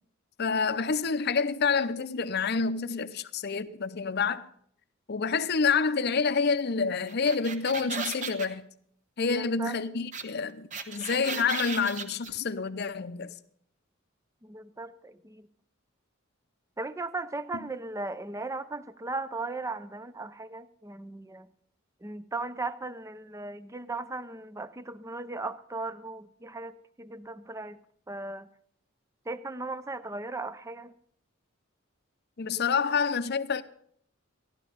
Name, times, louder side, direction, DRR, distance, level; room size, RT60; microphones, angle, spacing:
voice 1, 0.4-4.5 5.1-8.7 9.2-13.3 32.4-33.6, left 5 dB, 55° left, 0.6 m, -28 dB
sound 1, 7.1-8.5 10.1-10.2 10.5-12.3, right 5 dB, 40° right, 1.0 m, -35 dB
voice 2, 9.4-9.8 14.4-15.5 16.8-21.5 22.0-27.8 28.1-28.5 29.3-30.9, right 3 dB, 15° right, 0.5 m, -37 dB
14.0 x 11.0 x 5.5 m
head